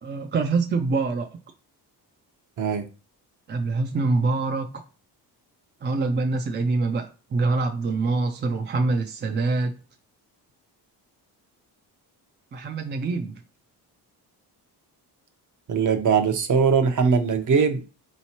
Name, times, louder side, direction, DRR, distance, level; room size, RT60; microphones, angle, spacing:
voice 1, 0.0-1.4 3.5-4.8 5.8-9.7 12.5-13.3, right 3 dB, 30° right, 0.3 m, -25 dB
voice 2, 15.7-17.8, right 5 dB, 50° right, 0.8 m, -21 dB
4.2 x 3.1 x 2.8 m
cardioid pair, 115°, 41 cm